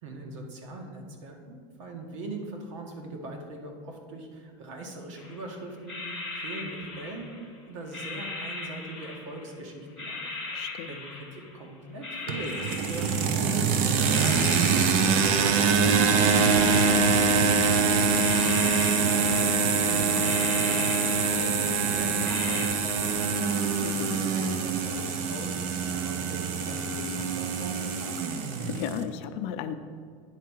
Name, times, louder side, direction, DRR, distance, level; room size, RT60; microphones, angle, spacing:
voice 1, 0.0-10.4 10.9-15.2 15.5-17.6 18.3-23.5 24.1-28.2, right 2 dB, 85° right, 2 dB, 1.7 m, -41 dB
sound 1, 5.1-5.5 5.8-7.5 7.9-9.5 10.0-11.6 12.0-13.7 14.0-15.7 16.1-17.8 18.1-19.8 20.2-21.8 22.2-22.7, left 3 dB, 5° left, 1.6 m, -39 dB
voice 2, 10.5-11.0 23.8-24.2 28.6-29.7, left 9 dB, 45° left, 9 dB, 0.5 m, -34 dB
sound 2, 12.3-29.0, right 5 dB, 50° right, 0.7 m, -24 dB
9.3 x 4.5 x 6.4 m, 2.1 s
supercardioid pair, 170°, 16 cm